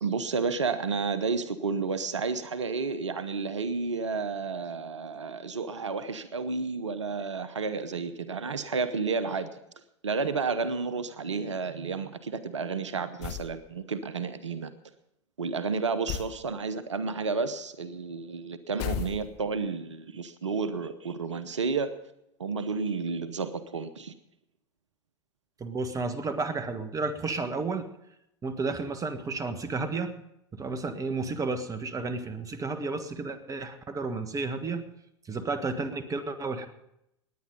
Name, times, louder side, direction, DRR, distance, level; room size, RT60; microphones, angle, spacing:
voice 1, 0.0-9.5 10.0-14.7 15.4-21.9 22.4-24.1, right 4 dB, 85° right, 13 dB, 0.9 m, -31 dB
sound 1, 13.2-13.6 16.1-16.4 18.8-19.6, left 9 dB, 50° left, 1.2 m, -34 dB
voice 2, 25.6-27.9 28.4-30.1 30.5-34.9 35.3-36.7, right 3 dB, 20° right, 10 dB, 1.5 m, -32 dB
19.0 x 9.6 x 5.2 m, 0.82 s
hypercardioid pair, 90°, 15 cm